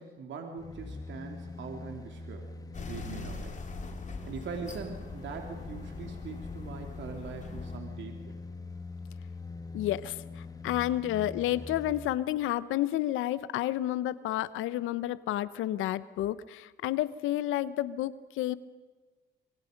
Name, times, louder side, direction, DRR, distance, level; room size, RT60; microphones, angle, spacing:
voice 1, 0.0-2.5 2.8-3.7 4.3-8.4, right 5 dB, 70° right, 3 dB, 3.1 m, -42 dB
sound 1, 0.6-12.2 12.5-12.6, left 3 dB, 20° left, 1.4 m, -43 dB
sound 2, 2.7-7.8, left 3 dB, 40° left, 3.0 m, -43 dB
voice 2, 9.7-18.6, left 13 dB, 90° left, 16 dB, 0.9 m, -30 dB
26.0 x 24.0 x 5.3 m, 1.4 s
cardioid pair, 90°, 20 cm